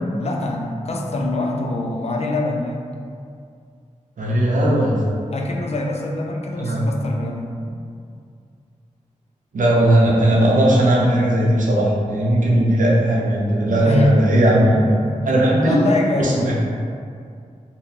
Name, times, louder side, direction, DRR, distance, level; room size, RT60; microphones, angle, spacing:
voice 1, 0.2-2.8 5.3-7.8 13.6-14.2 14.7-15.2 15.5-16.5, left 1 dB, 55° left, 0 dB, 0.4 m, -24 dB
voice 2, 4.2-5.1 6.6-6.9 9.5-14.8 15.2-15.8 16.2-16.5, right 1 dB, 80° right, -4 dB, 0.6 m, -17 dB
2.7 x 2.0 x 3.7 m, 2.3 s
cardioid pair, 55°, 13 cm